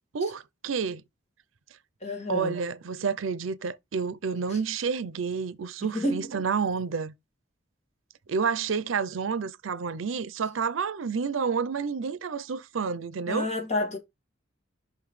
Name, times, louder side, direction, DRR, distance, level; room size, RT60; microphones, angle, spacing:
voice 1, 0.1-1.0 2.3-7.1 8.3-13.5, right 5 dB, 80° right, 0.5 m, -29 dB
voice 2, 2.0-2.6 4.5-4.6 5.9-6.3 13.3-14.0, left 1 dB, 35° left, 2.1 m, -29 dB
5.8 x 5.6 x 3.2 m
head